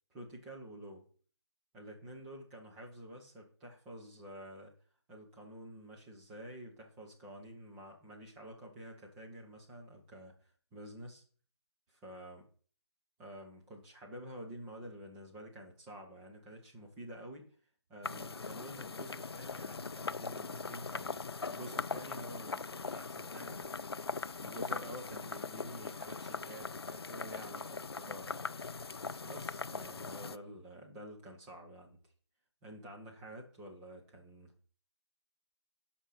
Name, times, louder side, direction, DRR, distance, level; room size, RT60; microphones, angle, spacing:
voice 1, 0.1-1.1 1.7-4.7 5.1-11.2 11.9-12.4 13.2-17.5 17.9-23.6 24.4-28.5 29.2-32.0 32.6-34.5, equal, 5° right, -2 dB, 0.7 m, -49 dB
sound 1, 18.0-30.4, left 4 dB, 65° left, 0.4 m, -41 dB
12.5 x 5.8 x 3.9 m, 0.44 s
figure-of-eight pair, 160°, 14 cm